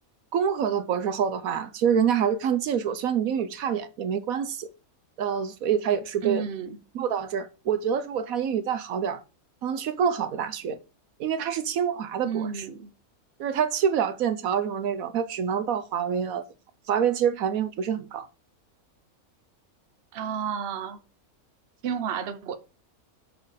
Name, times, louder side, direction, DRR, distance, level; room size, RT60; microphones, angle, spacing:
voice 1, 0.3-4.7 5.2-6.4 6.9-9.2 9.6-10.8 11.2-12.7 13.4-16.4 16.9-18.3, right 8 dB, 70° right, 1.1 m, -26 dB
voice 2, 6.2-6.8 12.2-12.9 20.1-21.0 21.8-22.6, right 7 dB, 50° right, 1.0 m, -31 dB
6.5 x 6.3 x 5.0 m
omnidirectional pair, 1.5 m